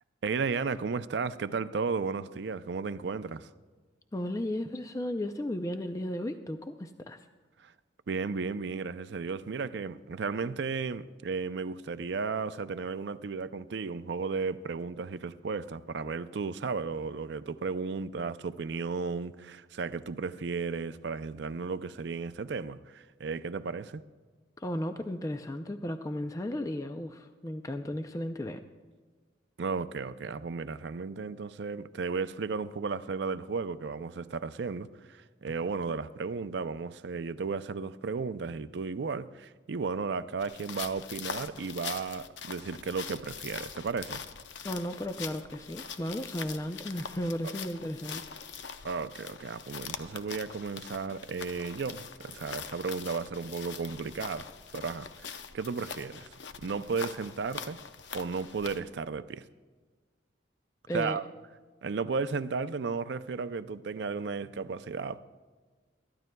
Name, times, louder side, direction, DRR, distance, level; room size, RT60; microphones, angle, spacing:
voice 1, 0.2-3.5 7.6-7.7 8.1-24.0 29.6-44.2 47.4-47.5 48.8-54.5 54.7-56.3 56.6-57.8 58.1-59.4 60.9-61.3 61.8-65.2, right 4 dB, 65° right, 0.4 m, -34 dB
voice 2, 4.1-7.3 24.6-28.6 44.6-48.2 60.9-61.2, left 1 dB, 15° left, 0.4 m, -34 dB
sound 1, 40.4-58.8, left 6 dB, 70° left, 0.7 m, -43 dB
23.0 x 13.0 x 2.2 m
head